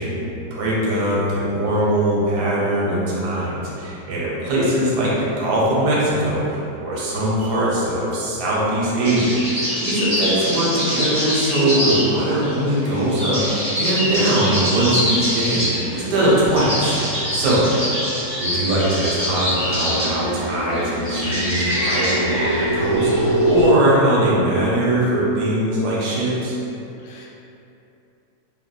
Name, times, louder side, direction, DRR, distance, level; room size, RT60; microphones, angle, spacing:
voice 1, 0.0-17.0 17.3-17.6 18.4-26.5, right 1 dB, 70° right, -6 dB, 1.2 m, -21 dB
sound 1, 9.0-23.6, equal, 10° right, 0.3 m, -25 dB
sound 2, 15.9-23.6, right 1 dB, 25° left, 0.7 m, -27 dB
voice 2, 17.4-17.8 27.0-27.3, left 2 dB, 90° left, -3 dB, 1.2 m, -38 dB
3.1 x 2.5 x 2.3 m, 2.8 s
omnidirectional pair, 1.8 m